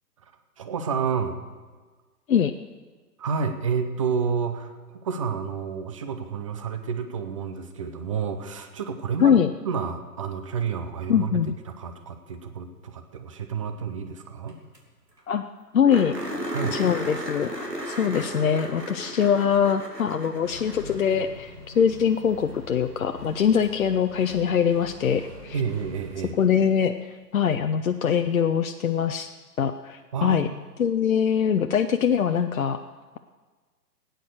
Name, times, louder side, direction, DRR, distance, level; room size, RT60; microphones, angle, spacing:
voice 1, 0.6-1.4 3.2-9.4 9.6-14.6 16.5-16.8 25.5-26.4 30.1-30.6 31.5-31.7, right 6 dB, 20° right, 7 dB, 0.6 m, -30 dB
voice 2, 9.2-9.5 11.1-11.6 15.3-15.4 15.7-16.1 16.7-17.5 17.9-25.6 26.4-29.3 29.6-30.5 30.8-32.9, left 8 dB, 60° left, 7 dB, 0.7 m, -23 dB
sound 1, 14.5-14.6 14.7-14.8 15.2-15.3 15.9-21.3 23.6-23.7 26.6-26.7, equal, 90° right, 3.1 m, -34 dB
Accelerating revving vroom, 20.4-26.6, left 1 dB, 60° right, 5.0 m, -44 dB
17.0 x 9.1 x 6.6 m, 1.4 s
figure-of-eight pair, 130°, 48 cm